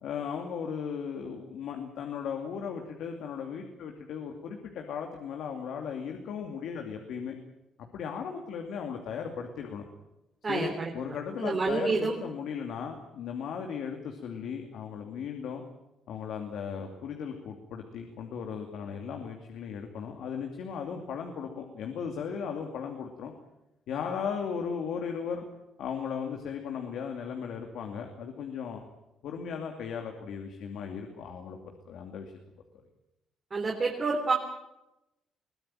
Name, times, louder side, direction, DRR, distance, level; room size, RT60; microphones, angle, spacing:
voice 1, 0.0-7.4 7.9-9.9 10.5-15.6 16.1-23.3 23.9-25.4 25.8-28.8 29.2-31.6 31.8-32.3, left 7 dB, 80° left, 3 dB, 2.6 m, -36 dB
voice 2, 10.4-10.9 11.4-12.2 33.5-34.3, right 3 dB, 35° right, 1 dB, 3.4 m, -28 dB
22.5 x 16.0 x 9.1 m, 0.93 s
cardioid pair, 90°, 0 cm